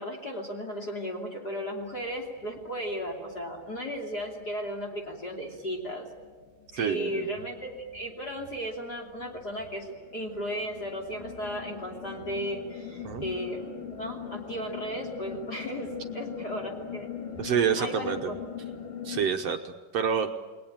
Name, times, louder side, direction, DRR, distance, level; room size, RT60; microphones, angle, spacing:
voice 1, 0.0-6.1 6.7-17.1 17.8-18.5, equal, 30° left, 0 dB, 3.3 m, -35 dB
sound 1, 1.8-19.3, left 7 dB, 75° left, 4.1 m, -43 dB
voice 2, 6.8-7.3 13.0-13.2 17.4-18.3 19.1-20.3, right 7 dB, 65° right, 5 dB, 1.7 m, -28 dB
29.0 x 20.5 x 9.0 m, 1.3 s
omnidirectional pair, 3.7 m